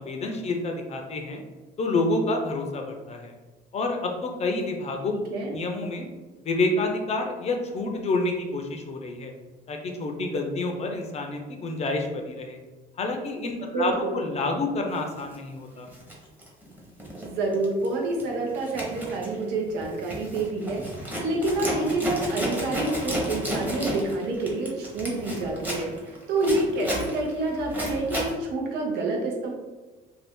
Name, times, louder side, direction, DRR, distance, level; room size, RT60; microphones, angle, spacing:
voice 1, 0.0-1.4 1.8-3.3 3.7-5.1 5.5-6.1 6.4-9.3 9.7-12.6 13.0-15.9, left 2 dB, 40° left, 3 dB, 0.5 m, -28 dB
voice 2, 5.1-5.6 13.6-14.2 17.2-29.5, right 2 dB, 85° right, 0 dB, 0.8 m, -28 dB
Zipper (clothing), 15.2-15.4 15.9-17.3 17.5-17.9 18.2-28.3, equal, 10° right, 0.9 m, -32 dB
2.6 x 2.4 x 3.5 m, 1.2 s
cardioid pair, 110°, 17 cm